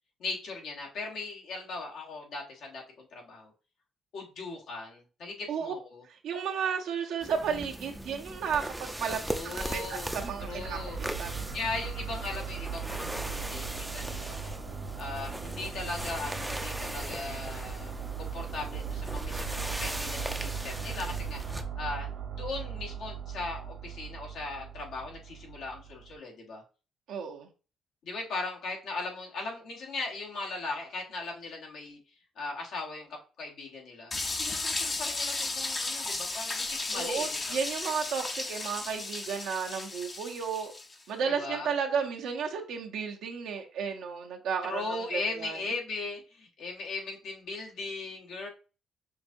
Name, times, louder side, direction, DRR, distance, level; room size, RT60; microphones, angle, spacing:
voice 1, 0.2-3.5 4.1-6.0 9.2-10.1 10.5-11.0 11.5-14.6 15.0-22.1 22.4-26.6 28.0-32.0 32.4-37.6 41.2-41.7 44.6-48.5, left 3 dB, 75° left, 0 dB, 1.2 m, -38 dB
voice 2, 6.1-10.8 11.2-11.4 27.1-27.5 36.9-40.7 41.1-45.6, right 6 dB, 85° right, 2 dB, 0.7 m, -33 dB
sound 1, 7.2-21.6, right 1 dB, 5° right, 0.4 m, -39 dB
sound 2, 9.9-26.1, right 7 dB, 60° right, 1.0 m, -39 dB
sound 3, 34.1-40.9, left 3 dB, 35° left, 0.6 m, -34 dB
5.7 x 2.7 x 2.5 m, 0.34 s
cardioid pair, 90°, 0 cm